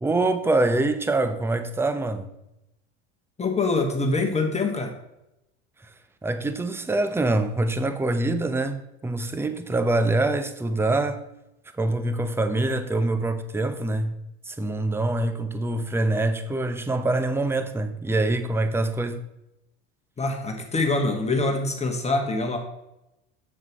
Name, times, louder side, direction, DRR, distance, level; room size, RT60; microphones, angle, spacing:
voice 1, 0.0-2.3 6.2-11.2 11.8-14.2 14.5-19.2, right 2 dB, 5° right, 0.7 m, -25 dB
voice 2, 3.4-5.0 20.2-22.6, left 3 dB, 20° left, 1.5 m, -24 dB
7.8 x 7.3 x 3.0 m
supercardioid pair, 95°, 35 cm